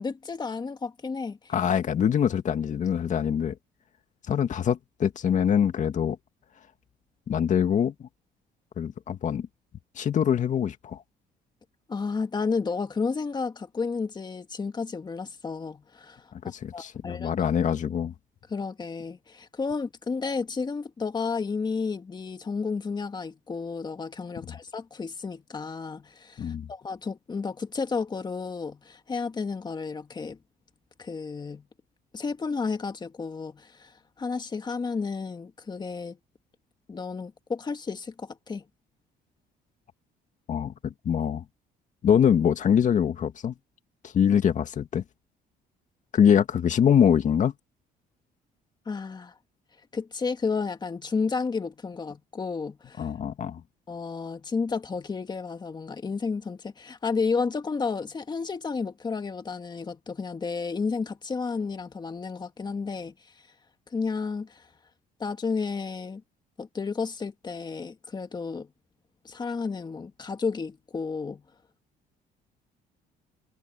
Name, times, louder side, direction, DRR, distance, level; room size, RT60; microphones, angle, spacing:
voice 1, 0.0-1.5 11.9-16.3 16.7-17.3 18.5-30.4 31.0-31.6 32.1-36.2 36.9-38.6 48.9-49.3 49.9-53.1 53.9-63.1 63.9-64.6 65.2-66.2 66.6-68.7 69.2-71.4, left 4 dB, 25° left, 1.9 m, -32 dB
voice 2, 1.5-3.6 4.3-6.2 7.3-7.9 8.8-9.5 10.0-11.0 16.5-18.1 26.4-26.7 40.5-41.4 42.0-43.5 44.0-45.0 46.1-47.5 53.0-53.6, left 8 dB, 45° left, 2.1 m, -24 dB
cardioid pair, 110°, 17 cm